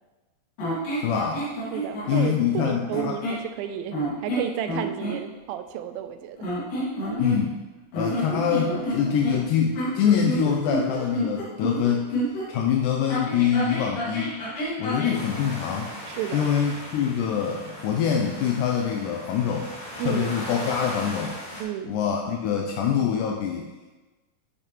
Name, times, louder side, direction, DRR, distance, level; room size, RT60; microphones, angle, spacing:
sound 1, 0.6-2.3 2.9-3.5 3.9-5.2 6.4-7.6 7.9-12.5 13.1-15.2, equal, 65° left, 3.7 m, -29 dB
voice 1, 1.0-1.5 2.1-3.2 7.2-7.6 7.9-12.1 12.5-14.3 14.8-15.9 16.3-19.7 20.1-21.3 21.9-23.7, left 8 dB, 80° left, 1 dB, 1.9 m, -25 dB
voice 2, 1.7-6.5 16.1-16.5 20.0-20.3 21.6-22.0, right 10 dB, 90° right, 9 dB, 2.4 m, -32 dB
sound 2, 15.1-21.6, left 1 dB, 25° left, 1.1 m, -38 dB
11.0 x 5.8 x 3.0 m, 1.2 s
omnidirectional pair, 4.1 m